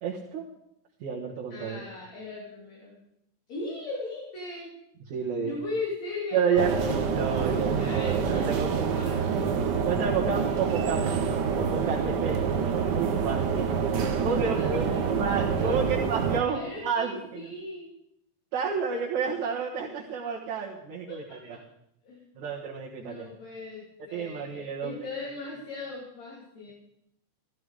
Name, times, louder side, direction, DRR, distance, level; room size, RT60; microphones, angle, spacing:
voice 1, 0.0-0.4 1.0-1.8 5.1-5.5 6.3-9.0 9.8-11.2 11.5-13.8 14.2-17.5 18.5-21.6 22.4-23.3 24.1-24.9, right 6 dB, 70° right, -4 dB, 2.9 m, -30 dB
voice 2, 1.5-2.9 3.5-4.7 5.4-7.0 7.8-9.5 14.2-15.8 16.4-17.9 21.1-21.6 22.0-22.3 23.0-26.7, left 3 dB, 60° left, -4 dB, 4.3 m, -38 dB
sound 1, 6.6-16.4, right 6 dB, 85° right, 0.9 m, -27 dB
15.5 x 14.5 x 4.9 m, 0.77 s
omnidirectional pair, 3.6 m